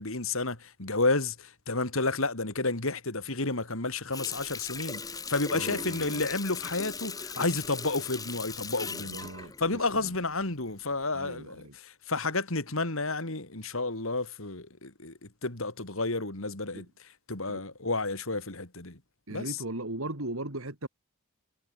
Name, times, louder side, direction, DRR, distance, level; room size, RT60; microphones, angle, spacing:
voice 1, 0.0-9.2 9.6-16.9 17.3-19.0 19.3-19.6, left 3 dB, 70° left, 3.2 m, -31 dB
Water tap faucet, 4.1-10.5 10.9-11.1, left 4 dB, 15° left, 2.6 m, -39 dB
voice 2, 5.5-6.3 8.9-10.1 11.1-11.8 16.7-16.9 17.5-17.6 19.3-20.9, right 2 dB, 75° right, 3.4 m, -38 dB
head